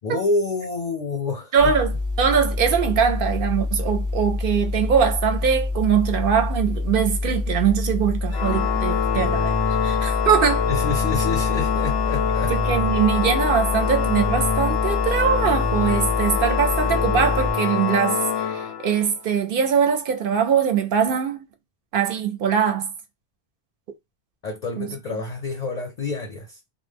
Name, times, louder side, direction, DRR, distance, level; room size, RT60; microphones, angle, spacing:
voice 1, 0.0-1.7 10.7-12.8 24.4-26.6, left 3 dB, 55° left, 0.5 m, -28 dB
voice 2, 1.5-1.9 2.2-10.7 12.5-21.4 21.9-22.9 24.8-24.9, right 7 dB, 65° right, 0.7 m, -22 dB
sound 1, 1.6-17.5, left 2 dB, 30° right, 0.4 m, -26 dB
Organ, 8.3-19.2, left 7 dB, 80° left, 0.8 m, -25 dB
2.1 x 2.0 x 3.3 m
omnidirectional pair, 1.0 m